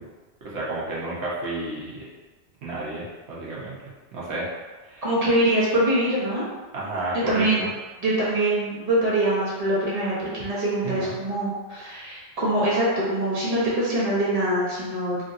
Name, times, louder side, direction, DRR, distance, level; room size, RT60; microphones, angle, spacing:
voice 1, 0.4-2.0 2.6-3.8 4.1-4.5 4.8-5.0 6.7-7.7 10.8-11.2, right 2 dB, 85° right, -6 dB, 1.1 m, -31 dB
voice 2, 5.0-6.4 7.1-7.7 8.0-15.2, right 1 dB, 35° right, -8 dB, 1.0 m, -24 dB
3.2 x 2.6 x 2.6 m, 1.3 s
omnidirectional pair, 1.1 m